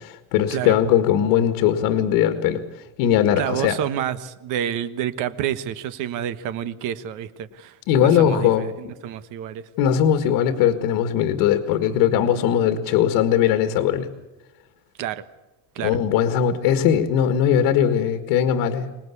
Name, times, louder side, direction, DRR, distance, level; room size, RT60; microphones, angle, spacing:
voice 1, 0.0-2.6 3.0-3.8 7.9-8.7 9.8-14.1 15.8-18.9, left 9 dB, 80° left, 1.9 m, -19 dB
voice 2, 3.4-7.8 8.0-9.7 15.0-15.2 15.7-16.0, right 10 dB, 60° right, 1.3 m, -28 dB
25.0 x 19.5 x 8.4 m
cardioid pair, 165°, 35 cm